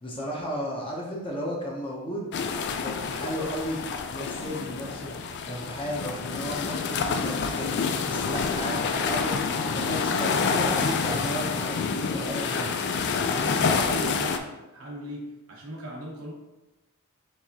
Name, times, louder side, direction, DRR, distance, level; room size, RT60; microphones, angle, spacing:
voice 1, 0.0-2.3 2.8-5.1 5.4-12.7 13.6-13.8, equal, 25° left, -3 dB, 0.7 m, -34 dB
sound 1, 2.3-14.4, left 5 dB, 55° left, 0.3 m, -28 dB
voice 2, 8.3-8.6 13.3-16.3, right 1 dB, 85° right, -2 dB, 0.9 m, -38 dB
4.7 x 3.5 x 2.8 m, 1.1 s
head